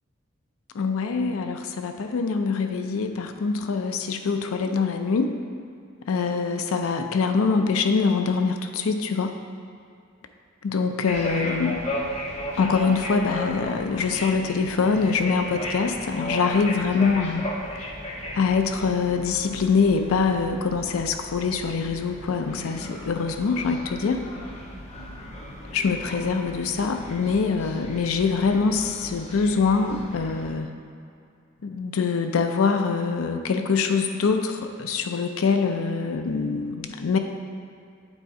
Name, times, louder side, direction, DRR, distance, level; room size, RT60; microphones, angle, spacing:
voice 1, 0.7-5.3 6.1-9.3 10.6-11.8 12.6-17.5 17.8-17.9 18.3-24.2 25.7-30.7 31.6-37.2, left 5 dB, 85° left, 6 dB, 0.4 m, -24 dB
sound 1, 11.0-30.5, left 1 dB, 30° left, 0.7 m, -36 dB
8.1 x 3.6 x 4.2 m, 2.4 s
head